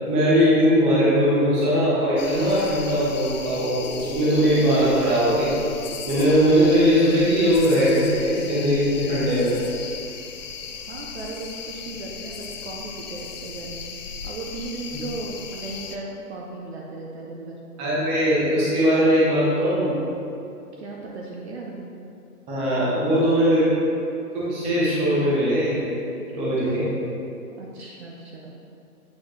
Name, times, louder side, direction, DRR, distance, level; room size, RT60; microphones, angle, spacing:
voice 1, 0.1-5.5 6.0-9.5 17.8-20.1 22.5-23.7 24.3-25.9 26.3-26.9, equal, 15° right, -8 dB, 0.9 m, -20 dB
sound 1, 2.2-16.0, left 6 dB, 55° left, 0.6 m, -37 dB
voice 2, 10.9-17.6 20.8-21.9 27.6-28.6, right 2 dB, 45° right, -2 dB, 0.7 m, -36 dB
8.3 x 4.0 x 3.2 m, 2.6 s
hypercardioid pair, 160°, 46 cm